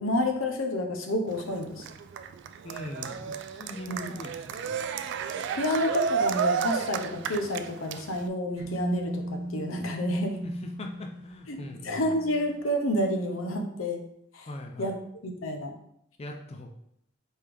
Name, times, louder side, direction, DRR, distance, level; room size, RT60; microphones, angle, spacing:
voice 1, 0.0-1.9 3.8-4.1 5.5-10.4 11.5-11.6 11.8-14.0 14.3-14.5 14.8-15.0 15.2-15.7, left 1 dB, 85° left, 4 dB, 0.7 m, -29 dB
Cheering, 1.3-8.3, right 6 dB, 60° right, 0.3 m, -32 dB
voice 2, 2.6-4.8 10.4-12.0 14.5-14.9 16.2-16.7, left 1 dB, 30° left, 3 dB, 0.4 m, -41 dB
sound 1, 8.6-12.4, right 1 dB, 35° right, 1.3 m, -36 dB
4.3 x 3.5 x 3.4 m, 0.72 s
head